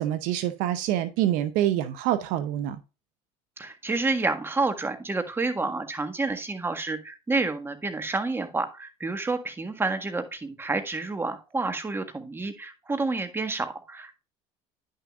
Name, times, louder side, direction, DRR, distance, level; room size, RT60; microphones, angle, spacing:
voice 1, 0.0-2.8, right 12 dB, 75° right, 0.7 m, -26 dB
voice 2, 3.6-14.1, right 3 dB, 15° right, 1.6 m, -29 dB
10.5 x 6.4 x 2.4 m
supercardioid pair, 100°, 14 cm